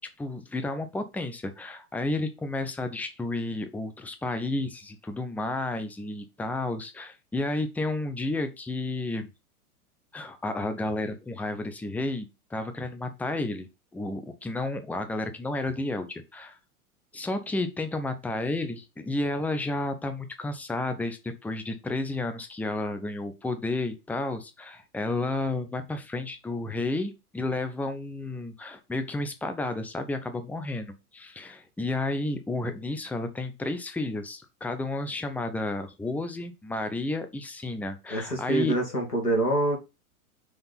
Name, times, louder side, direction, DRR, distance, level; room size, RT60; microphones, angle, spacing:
voice 1, 0.2-9.3 10.1-16.6 17.1-38.7, left 2 dB, 5° left, 9 dB, 0.8 m, -32 dB
voice 2, 38.1-39.8, right 1 dB, 85° left, 1 dB, 3.0 m, -25 dB
6.1 x 3.8 x 5.6 m, 0.26 s
figure-of-eight pair, 95°, 45 cm